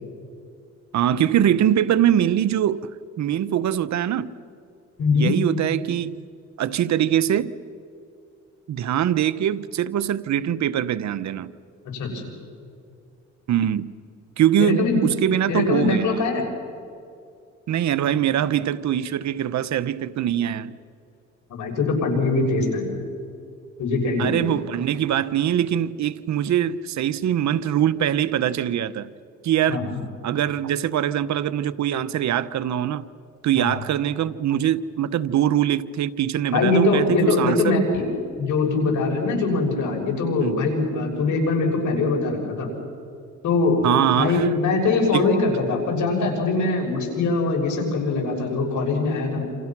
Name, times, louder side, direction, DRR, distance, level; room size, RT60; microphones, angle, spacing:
voice 1, 0.9-2.9 3.2-4.3 5.1-6.2 6.6-7.5 8.7-11.5 13.5-13.9 14.4-16.3 17.7-20.8 24.2-29.1 29.4-29.8 30.2-33.1 33.4-38.0 40.4-40.6 43.8-44.6 45.1-45.3, right 10 dB, 65° right, 15 dB, 1.0 m, -23 dB
voice 2, 5.0-5.3 11.9-12.3 14.6-15.0 15.5-16.5 21.5-23.0 23.8-24.4 29.7-30.0 33.6-33.8 36.5-38.0 38.4-42.7 43.4-43.9 44.2-49.4, left 3 dB, 70° left, 1 dB, 6.9 m, -22 dB
28.0 x 28.0 x 6.1 m, 2.4 s
cardioid pair, 90°, 30 cm